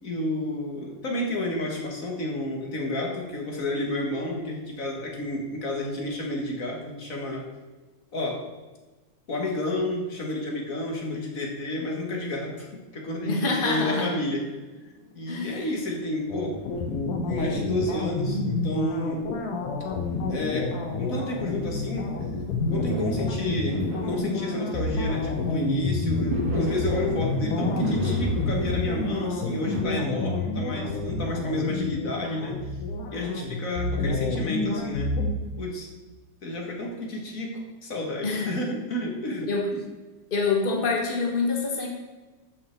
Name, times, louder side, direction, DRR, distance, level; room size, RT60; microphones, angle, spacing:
voice 1, 0.0-7.4 8.1-8.4 9.3-14.4 15.1-16.6 17.2-19.3 20.3-22.1 22.7-32.6 33.1-35.2 35.6-35.9 36.4-39.8, left 1 dB, 35° left, 0 dB, 1.4 m, -31 dB
voice 2, 13.2-14.1 15.3-15.6 38.2-38.5 39.5-39.7 40.3-41.9, left 4 dB, 65° left, 0 dB, 0.5 m, -26 dB
Fireworks, 14.6-29.8, equal, 85° right, 3.6 m, -37 dB
sound 1, 16.3-35.3, left 3 dB, 85° left, 2.7 m, -29 dB
14.0 x 5.9 x 4.6 m, 1.2 s
omnidirectional pair, 3.6 m